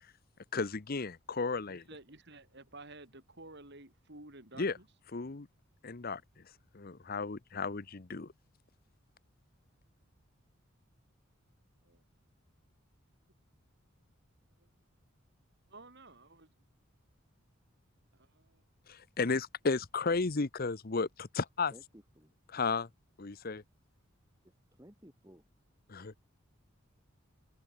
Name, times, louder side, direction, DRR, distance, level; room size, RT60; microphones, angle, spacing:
voice 1, 0.5-1.8 4.6-4.8 5.1-5.5 5.8-6.2 6.7-8.3 18.9-21.7 22.5-22.9 23.2-23.6 25.9-26.2, left 4 dB, 45° left, 0.9 m, -34 dB
voice 2, 1.7-4.9 11.8-12.0 14.6-14.7 15.7-16.5 18.1-18.6, right 2 dB, 55° right, 6.6 m, -53 dB
voice 3, 21.7-22.3 24.8-25.4, equal, 15° right, 4.9 m, -56 dB
head